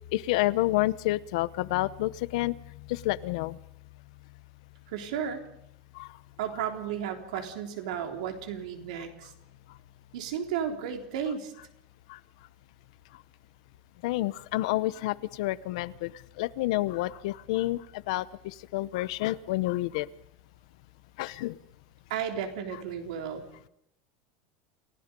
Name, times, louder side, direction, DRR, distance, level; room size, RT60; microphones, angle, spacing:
voice 1, 0.1-3.6 5.9-6.2 9.7-9.8 12.1-12.2 13.1-13.2 14.0-20.1 21.2-21.6, left 17 dB, 65° left, 17 dB, 0.8 m, -29 dB
voice 2, 4.9-5.4 6.4-9.3 10.1-11.5 22.1-23.4, right 8 dB, 80° right, 4 dB, 3.8 m, -33 dB
29.0 x 16.5 x 5.4 m, 0.76 s
supercardioid pair, 180°, 4 cm